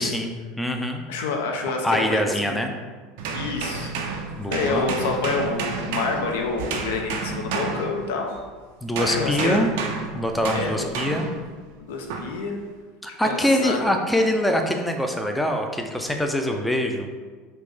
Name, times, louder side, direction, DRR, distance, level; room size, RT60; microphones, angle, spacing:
voice 1, 0.0-1.0 1.8-2.7 4.4-4.9 8.8-9.7 10.1-11.3 13.0-17.1, equal, 5° left, 3 dB, 0.3 m, -24 dB
voice 2, 1.1-2.6 3.3-3.9 4.5-8.4 9.0-9.6 10.5-10.9 11.7-12.6 13.2-13.8, left 4 dB, 80° left, 2 dB, 0.4 m, -28 dB
sound 1, 3.2-8.5 9.0-11.5 12.1-12.4, right 4 dB, 75° right, 0.3 m, -30 dB
3.3 x 2.0 x 3.3 m, 1.5 s
hypercardioid pair, 95°, 0 cm